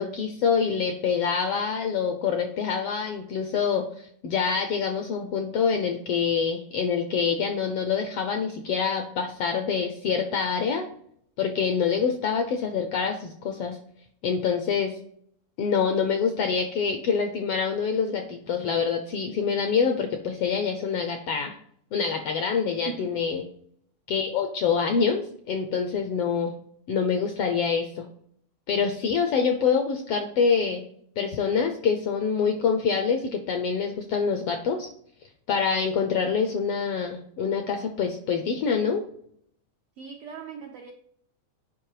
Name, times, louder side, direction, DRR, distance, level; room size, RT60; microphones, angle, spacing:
voice 1, 0.0-10.9 11.4-13.8 14.2-15.0 15.6-21.5 21.9-23.4 24.1-26.5 26.9-28.1 28.7-30.8 31.2-34.9 35.5-39.0, left 6 dB, 75° left, 1.4 m, -26 dB
voice 2, 40.0-40.9, right 7 dB, 85° right, 1.2 m, -39 dB
7.5 x 5.3 x 4.9 m
omnidirectional pair, 3.5 m